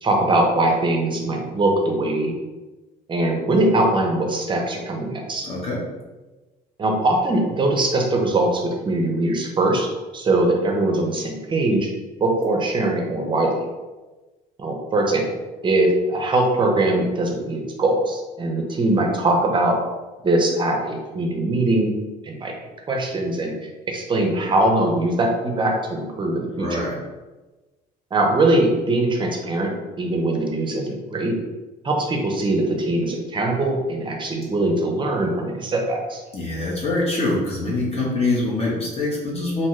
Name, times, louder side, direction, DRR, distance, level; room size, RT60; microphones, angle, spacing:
voice 1, 0.0-2.3 3.1-5.5 6.8-11.9 12.2-13.7 14.6-15.3 15.6-19.8 20.2-21.9 22.2-22.5 22.9-23.5 23.9-26.8 28.1-29.7 30.0-31.4 31.8-36.2, right 2 dB, 30° right, 1 dB, 0.5 m, -21 dB
voice 2, 5.4-5.8 26.6-27.0 36.3-39.7, left 2 dB, 35° left, -5 dB, 0.8 m, -24 dB
2.7 x 2.2 x 3.0 m, 1.2 s
cardioid pair, 110°, 17 cm